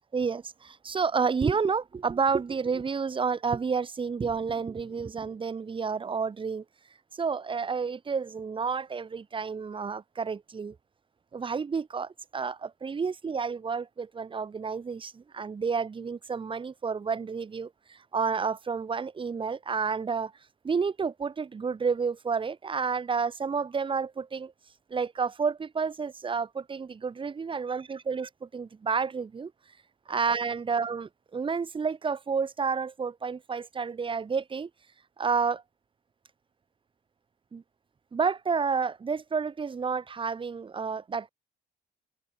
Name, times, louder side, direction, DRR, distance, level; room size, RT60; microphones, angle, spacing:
voice 1, 0.1-6.6 7.1-10.8 11.3-20.3 20.6-24.5 24.9-29.5 30.1-34.7 35.2-35.6 37.5-37.6 38.1-41.3, right 5 dB, 30° right, 4.5 m, -30 dB
cardioid pair, 110°, 17 cm